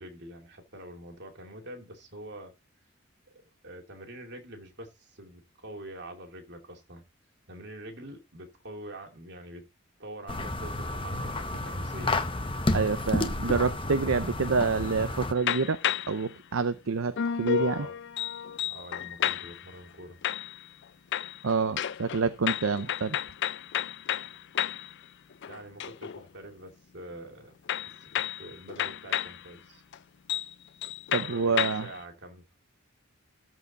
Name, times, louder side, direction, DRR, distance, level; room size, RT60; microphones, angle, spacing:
voice 1, 0.0-2.5 3.6-7.0 7.5-9.7 10.0-12.2 17.5-18.0 18.6-20.2 25.5-27.5 28.0-29.8 31.1-32.4, right 1 dB, 55° right, 2.6 m, -45 dB
sound 1, 10.3-15.3, left 2 dB, 25° left, 0.8 m, -31 dB
voice 2, 12.7-15.8 16.1-17.8 21.4-23.2 31.1-31.9, right 4 dB, 70° right, 0.6 m, -27 dB
sound 2, 15.4-16.3 17.2-19.7 20.2-20.8 21.1-24.9 25.3-26.2 27.7-29.4 29.9-30.0 30.3-30.5 30.8-32.0, left 10 dB, 55° left, 0.4 m, -32 dB
13.5 x 4.8 x 4.2 m
head